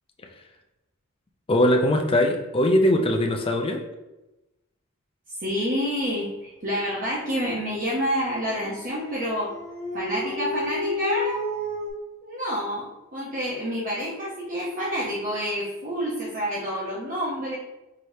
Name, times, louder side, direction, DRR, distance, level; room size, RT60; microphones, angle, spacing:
voice 1, 1.5-3.8, left 1 dB, 25° left, 3 dB, 0.4 m, -21 dB
voice 2, 5.4-9.5 9.9-11.4 12.2-17.6, equal, 40° right, -6 dB, 0.8 m, -28 dB
Dog, 8.4-11.9, left 2 dB, 5° left, 0.8 m, -31 dB
4.8 x 3.1 x 2.7 m, 0.99 s
head